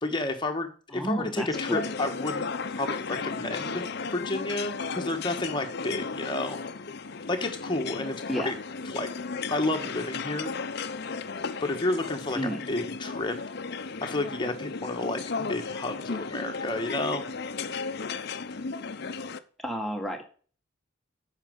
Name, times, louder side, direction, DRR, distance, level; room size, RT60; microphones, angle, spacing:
voice 1, 0.0-3.8 4.1-6.6 7.3-8.5 8.8-9.1 9.5-10.5 11.6-12.4 12.7-13.4 14.0-17.2, left 2 dB, 25° left, 4 dB, 1.4 m, -31 dB
voice 2, 0.9-1.9 8.3-8.5 12.3-12.7 19.6-20.2, equal, ahead, 2 dB, 1.7 m, -31 dB
sound 1, 1.5-19.4, left 4 dB, 55° left, 0.7 m, -35 dB
8.8 x 6.0 x 5.2 m, 0.40 s
head